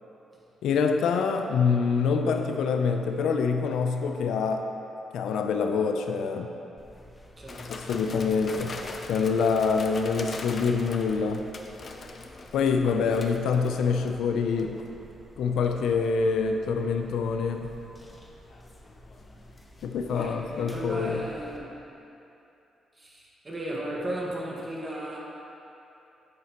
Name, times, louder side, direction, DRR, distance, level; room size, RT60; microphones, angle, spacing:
voice 1, 0.6-4.7 5.1-6.5 7.7-8.8 9.1-11.5 12.5-14.8 15.4-17.8 19.8-21.2, left 5 dB, 85° left, 5 dB, 0.5 m, -26 dB
sound 1, 6.8-21.6, left 1 dB, 15° left, 0.8 m, -50 dB
voice 2, 7.4-7.8 20.1-21.7 23.0-25.2, right 1 dB, 25° right, -4 dB, 1.6 m, -35 dB
sound 2, 7.5-14.2 14.6-14.9 15.6-16.1 18.3-19.9 20.2-20.3, left 3 dB, 40° left, 0.6 m, -42 dB
9.5 x 8.2 x 3.0 m, 2.8 s
cardioid pair, 105°, 0 cm